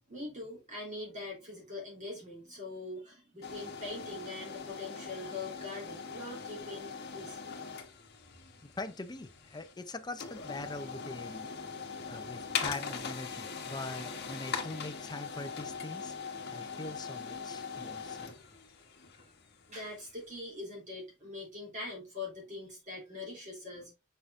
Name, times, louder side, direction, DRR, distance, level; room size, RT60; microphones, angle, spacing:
voice 1, 0.1-7.4 19.7-23.9, left 2 dB, 35° right, 3.3 m, -43 dB
sound 1, 3.4-20.3, left 5 dB, 50° left, 1.1 m, -41 dB
voice 2, 8.6-11.5 12.1-16.1 16.5-18.4, left 2 dB, 20° left, 0.6 m, -42 dB
6.6 x 5.6 x 2.5 m
head